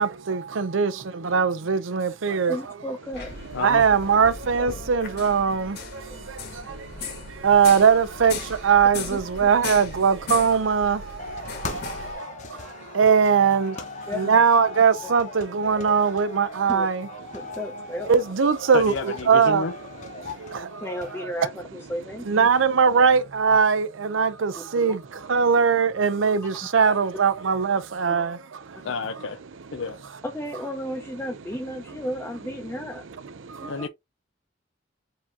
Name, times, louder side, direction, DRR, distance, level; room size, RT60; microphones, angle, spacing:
voice 1, 0.0-2.8 3.4-19.7 20.2-21.3 22.3-28.9 31.9-32.0 32.7-32.8 33.2-33.9, right 6 dB, 85° right, 0.6 m, -22 dB
voice 2, 2.5-3.3 4.6-4.7 6.3-6.5 9.1-9.2 14.1-14.4 15.0-15.1 16.7-16.9 17.3-18.2 20.8-22.5 24.6-25.0 28.1-28.2 28.8-28.9 30.2-33.0 33.6-33.9, equal, 10° left, 0.7 m, -34 dB
sound 1, 3.1-12.1, left 4 dB, 55° left, 1.3 m, -37 dB
voice 3, 3.5-3.8 18.7-19.7 28.8-29.4 29.7-30.0 33.7-33.9, left 4 dB, 75° left, 0.5 m, -30 dB
sound 2, 11.2-21.2, left 3 dB, 40° left, 0.9 m, -39 dB
4.8 x 2.8 x 3.4 m
head